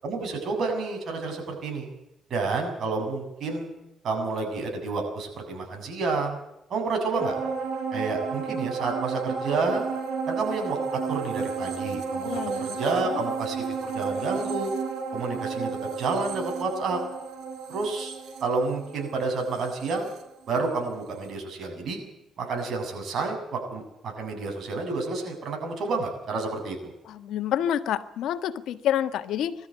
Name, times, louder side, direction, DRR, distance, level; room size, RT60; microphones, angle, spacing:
voice 1, 0.0-1.9 2.3-3.7 4.0-6.4 6.7-7.4 7.9-9.8 10.3-12.3 12.6-14.7 15.1-17.0 17.7-18.1 18.4-20.1 20.5-22.0 22.4-26.9, right 3 dB, 60° right, 3 dB, 7.4 m, -29 dB
sound 1, 7.2-20.9 21.3-21.4, right 5 dB, 80° right, 4.0 m, -32 dB
voice 2, 12.2-12.7 13.0-13.2 27.0-29.5, left 10 dB, 80° left, 10 dB, 1.3 m, -28 dB
21.5 x 13.5 x 9.2 m, 0.86 s
cardioid pair, 90°, 0 cm